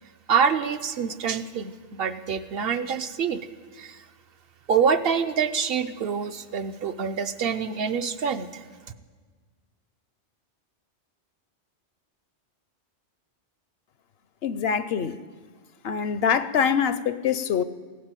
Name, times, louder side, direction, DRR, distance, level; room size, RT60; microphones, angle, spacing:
voice 1, 0.3-3.4 3.7-4.0 4.7-8.6, right 6 dB, 60° right, 9 dB, 0.8 m, -26 dB
voice 2, 14.4-15.2 15.8-17.6, left 7 dB, 65° left, 14 dB, 0.8 m, -24 dB
16.0 x 9.4 x 8.9 m, 1.5 s
omnidirectional pair, 1.2 m